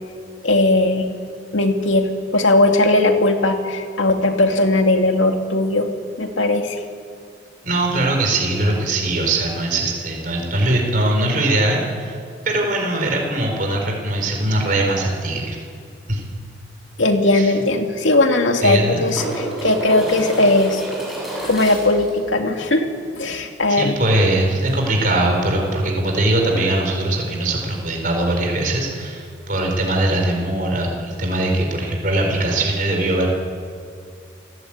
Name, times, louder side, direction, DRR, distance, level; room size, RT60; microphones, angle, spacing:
voice 1, 0.4-1.1 1.5-5.9 6.2-6.8 17.0-20.8 21.4-22.9 23.2-23.9, left 2 dB, 90° left, 4 dB, 2.4 m, -18 dB
voice 2, 7.6-12.1 12.4-15.6 16.1-16.2 17.3-17.5 18.6-19.1 23.7-33.3, right 1 dB, 45° right, 1 dB, 4.3 m, -21 dB
sound 1, 16.9-17.0 17.3-17.4 18.4-22.1 24.7-24.8, right 1 dB, ahead, 7.9 m, -29 dB
28.5 x 17.0 x 8.8 m, 2.3 s
head